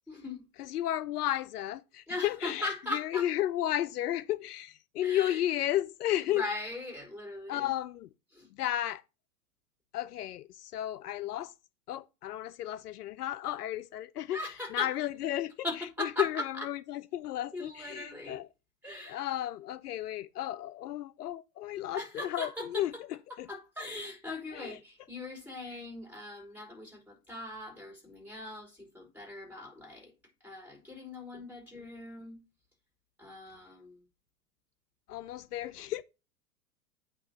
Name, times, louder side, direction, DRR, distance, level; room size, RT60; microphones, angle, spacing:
voice 1, 0.1-0.4 2.1-3.3 5.0-5.4 6.1-7.8 8.3-8.5 14.3-14.9 15.6-16.7 17.5-18.4 18.8-19.2 21.9-23.0 23.3-30.1 30.4-32.4 33.2-34.0, left 1 dB, 5° right, 3.4 m, -40 dB
voice 2, 0.6-6.4 7.5-8.1 8.5-9.0 9.9-11.5 11.9-14.4 14.7-15.5 16.0-18.5 19.1-22.9 23.4-23.5 24.5-24.8 31.7-31.9 35.1-36.0, left 13 dB, 75° left, 0.5 m, -33 dB
8.6 x 2.9 x 5.9 m
hypercardioid pair, 110°, 47 cm